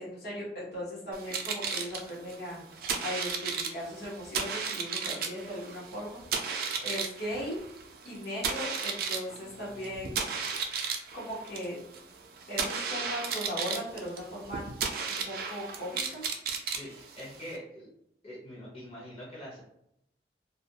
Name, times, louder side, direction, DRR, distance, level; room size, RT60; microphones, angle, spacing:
voice 1, 0.0-2.6 3.0-6.5 6.8-7.6 8.0-10.2 11.1-11.8 12.5-14.6 15.1-16.2, equal, 65° left, -7 dB, 1.0 m, -38 dB
sound 1, 1.1-17.6, right 5 dB, 55° right, 0.4 m, -35 dB
voice 2, 16.6-17.9 18.2-19.6, equal, 35° left, -5 dB, 0.7 m, -44 dB
2.3 x 2.2 x 2.7 m, 0.76 s
head